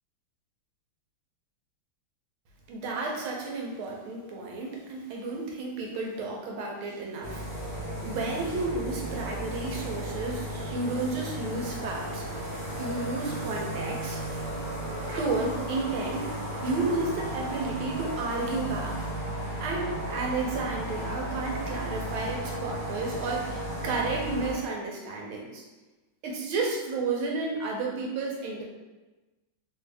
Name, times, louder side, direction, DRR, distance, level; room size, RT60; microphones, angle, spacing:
voice 1, 2.7-7.4 8.0-12.3 12.8-14.2 15.1-16.3 16.6-19.0 19.6-25.6 26.2-28.6, right 3 dB, 80° right, -1 dB, 1.5 m, -32 dB
sound 1, 7.2-24.6, right 1 dB, 50° right, 0.6 m, -34 dB
3.4 x 2.7 x 3.3 m, 1.1 s
omnidirectional pair, 2.3 m